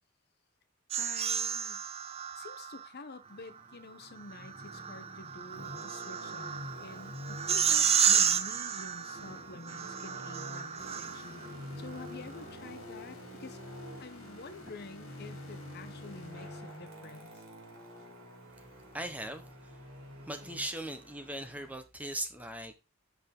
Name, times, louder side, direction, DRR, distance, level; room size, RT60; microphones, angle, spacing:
sound 1, 0.9-2.9 4.3-11.5, right 8 dB, 30° right, 0.5 m, -31 dB
voice 1, 1.0-1.9 2.3-11.4 11.8-13.6 14.0-17.4, left 3 dB, 50° left, 0.8 m, -48 dB
Traffic noise roadway noise, 3.2-21.7, equal, 70° right, 2.8 m, -48 dB
sound 2, 10.8-17.3, left 2 dB, 70° left, 3.1 m, -52 dB
voice 2, 18.9-19.8 20.2-22.7, right 1 dB, 5° right, 0.9 m, -39 dB
7.9 x 6.4 x 3.8 m
head